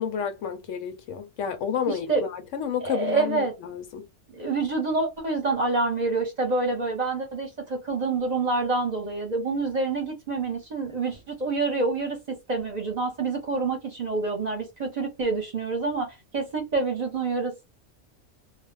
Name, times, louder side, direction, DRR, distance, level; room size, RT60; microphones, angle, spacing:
voice 1, 0.0-4.1, left 7 dB, 80° left, 0.9 m, -30 dB
voice 2, 1.9-2.3 2.8-3.5 4.3-17.6, right 3 dB, 40° right, 0.8 m, -27 dB
2.4 x 2.0 x 3.2 m
omnidirectional pair, 1.3 m